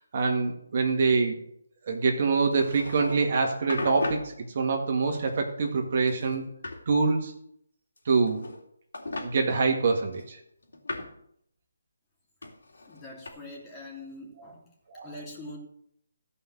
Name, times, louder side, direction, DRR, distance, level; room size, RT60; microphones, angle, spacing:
voice 1, 0.1-1.4 1.9-6.4 6.9-7.3 8.1-8.4 9.2-10.4 14.9-15.1, right 4 dB, 40° right, 2 dB, 1.9 m, -25 dB
sound 1, 2.5-3.3 3.7-4.3 5.1-5.8 6.1-6.8 8.0-8.6 8.9-9.3 10.1-11.2 12.4-13.3, left 2 dB, 75° left, 3.3 m, -37 dB
voice 2, 12.8-14.7 15.0-15.6, left 1 dB, 15° left, -1 dB, 2.9 m, -43 dB
14.0 x 5.7 x 7.6 m, 0.72 s
hypercardioid pair, 160°, 0 cm